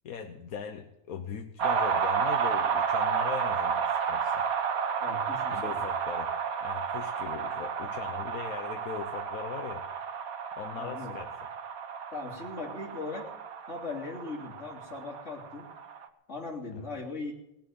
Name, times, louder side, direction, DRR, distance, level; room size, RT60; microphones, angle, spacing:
voice 1, 0.0-4.4 5.5-6.4 6.6-9.9 10.5-11.3 16.7-16.9, left 7 dB, 85° left, 5 dB, 1.4 m, -40 dB
sound 1, 1.6-16.1, right 6 dB, 85° right, 1.5 m, -31 dB
voice 2, 5.0-5.8 10.8-11.1 12.1-13.3 13.7-15.7 16.3-17.3, left 3 dB, 55° left, -3 dB, 3.6 m, -39 dB
19.5 x 7.5 x 9.5 m, 0.90 s
omnidirectional pair, 1.4 m